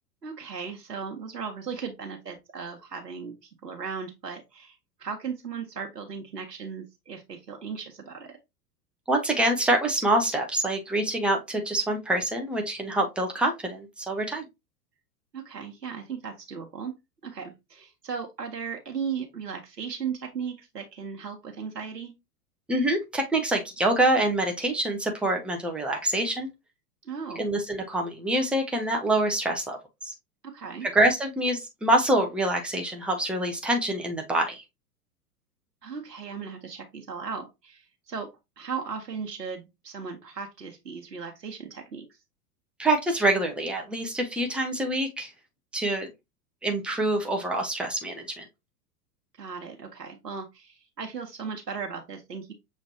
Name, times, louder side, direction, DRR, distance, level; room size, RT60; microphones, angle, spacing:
voice 1, 0.2-8.4 15.3-16.9 17.2-22.1 27.0-27.5 30.5-30.9 35.8-38.3 38.6-42.0 49.4-52.5, right 6 dB, 85° right, 1.0 m, -37 dB
voice 2, 9.1-14.4 22.7-26.5 27.4-30.1 30.8-34.6 42.8-45.3 45.7-46.1 46.6-48.5, right 1 dB, ahead, 0.5 m, -26 dB
6.4 x 3.1 x 2.7 m
figure-of-eight pair, 95°, 48 cm